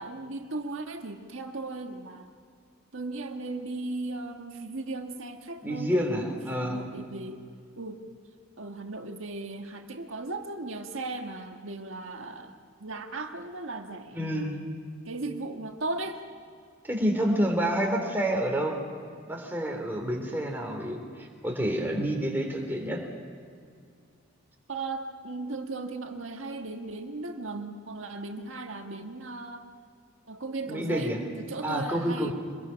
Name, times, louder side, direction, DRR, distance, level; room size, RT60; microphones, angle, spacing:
voice 1, 0.0-2.3 2.9-6.3 6.6-7.4 7.7-8.0 8.6-14.6 15.0-16.2 24.7-29.7 30.3-32.3, right 2 dB, 70° right, 4 dB, 1.6 m, -37 dB
voice 2, 5.6-6.8 14.1-14.5 16.8-18.7 19.3-23.0 30.7-31.2 31.6-32.3, equal, 10° right, 1 dB, 3.3 m, -28 dB
25.5 x 21.5 x 5.8 m, 2.2 s
head